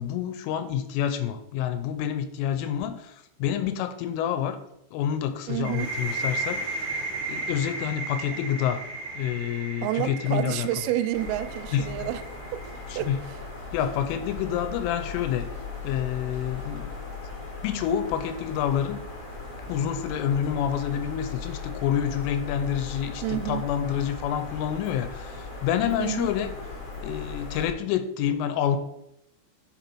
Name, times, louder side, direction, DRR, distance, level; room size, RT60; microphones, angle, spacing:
voice 1, 0.0-4.6 4.9-6.9 7.3-8.8 9.1-10.7 11.7-12.1 12.9-13.2 13.7-15.5 15.8-16.9 17.6-19.0 19.7-26.5 27.0-28.8, left 9 dB, 85° left, 3.0 m, -28 dB
voice 2, 5.5-5.9 9.8-12.2 12.5-12.6 13.0-13.1 23.2-23.6 26.0-26.3, right 14 dB, 85° right, 3.2 m, -29 dB
sound 1, 5.6-13.2, right 2 dB, 45° right, 1.2 m, -35 dB
sound 2, 11.1-27.7, left 4 dB, 60° left, 0.8 m, -38 dB
9.3 x 6.5 x 4.5 m
omnidirectional pair, 5.9 m